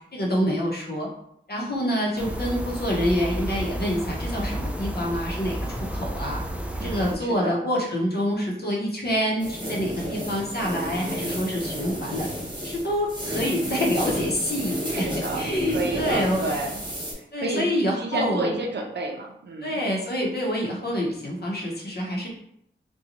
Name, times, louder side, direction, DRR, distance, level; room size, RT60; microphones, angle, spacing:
voice 1, 0.1-1.1 1.5-6.4 6.7-12.3 12.6-16.5 17.3-18.5 19.6-22.3, equal, 55° left, -2 dB, 0.8 m, -27 dB
sound 1, 2.2-7.2, right 1 dB, 5° right, 0.3 m, -31 dB
voice 2, 6.8-7.6 14.9-15.5 15.7-16.7 17.2-17.7 18.0-19.7, right 2 dB, 65° right, 1 dB, 0.5 m, -30 dB
sound 2, 9.4-17.1, equal, 25° right, 0.9 m, -31 dB
2.5 x 2.2 x 2.8 m, 0.72 s
wide cardioid pair, 80°, 19 cm